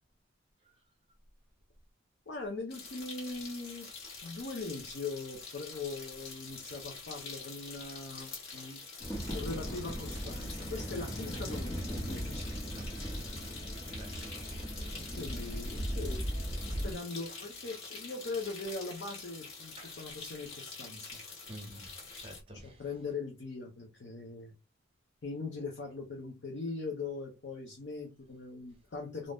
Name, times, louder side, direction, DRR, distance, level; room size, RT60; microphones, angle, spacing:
voice 1, 2.3-3.9 4.2-8.8 9.3-12.5 15.2-16.2 16.7-21.2 22.6-24.5 25.2-29.3, left 3 dB, 55° left, 0.6 m, -41 dB
sound 1, 2.7-22.4, left 4 dB, 80° left, 1.3 m, -46 dB
voice 2, 8.2-8.8 12.8-13.1 13.9-14.1 14.7-15.4 19.8-20.0 21.5-21.9 22.2-22.8, right 1 dB, 25° right, 0.7 m, -50 dB
sound 2, 9.0-16.9, equal, 20° left, 0.7 m, -38 dB
2.5 x 2.1 x 3.3 m
head